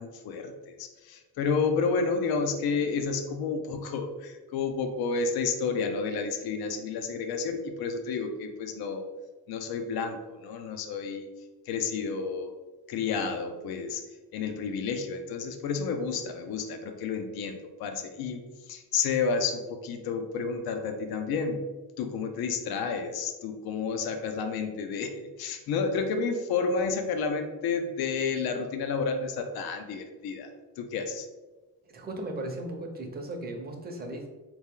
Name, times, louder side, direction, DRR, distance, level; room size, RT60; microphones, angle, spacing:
voice 1, 0.0-9.1 9.5-11.3 11.7-12.5 12.9-14.0 14.3-21.6 22.0-25.1 25.4-30.5 30.8-31.3, left 5 dB, 75° left, 6 dB, 0.6 m, -30 dB
voice 2, 31.8-34.3, right 1 dB, 25° right, 3 dB, 0.7 m, -37 dB
3.9 x 3.0 x 3.6 m, 1.2 s
cardioid pair, 135°, 37 cm